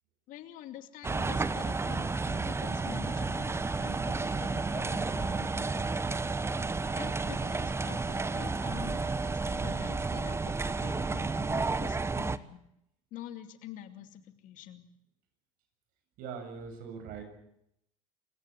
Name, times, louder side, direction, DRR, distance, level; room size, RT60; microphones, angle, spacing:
voice 1, 0.3-5.9 7.0-12.6 13.1-14.8, left 12 dB, 65° left, 8 dB, 2.6 m, -47 dB
sound 1, 1.0-12.4, right 3 dB, 15° right, 1.1 m, -31 dB
voice 2, 16.2-17.2, right 6 dB, 70° right, 6 dB, 7.5 m, -41 dB
28.5 x 16.0 x 8.2 m, 0.77 s
supercardioid pair, 85°, 15 cm